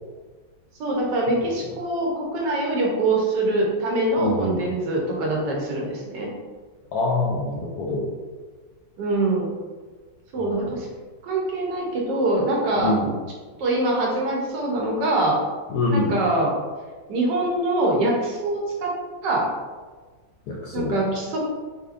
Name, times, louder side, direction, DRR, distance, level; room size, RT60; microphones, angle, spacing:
voice 1, 0.8-6.3 9.0-9.5 10.3-10.9 11.2-12.9 13.6-15.4 15.9-16.5 17.1-18.9 19.2-19.5 20.7-21.4, right 2 dB, 70° right, -2 dB, 1.3 m, -24 dB
voice 2, 4.2-4.6 6.9-8.1 10.4-10.5 12.8-13.1 15.7-16.2 20.5-21.0, left 2 dB, 70° left, -3 dB, 1.0 m, -25 dB
4.2 x 2.8 x 2.4 m, 1.4 s
omnidirectional pair, 2.0 m